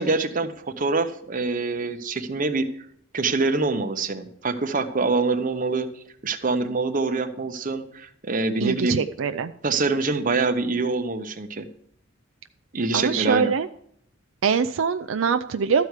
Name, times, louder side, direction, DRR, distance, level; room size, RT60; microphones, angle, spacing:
voice 1, 0.0-2.7 3.1-5.9 6.2-9.0 9.6-11.7 12.7-13.5, right 3 dB, 40° right, 7 dB, 0.9 m, -25 dB
voice 2, 8.6-9.5 12.9-13.7 14.4-15.9, right 6 dB, 75° right, 9 dB, 0.4 m, -23 dB
13.0 x 4.7 x 8.2 m, 0.66 s
head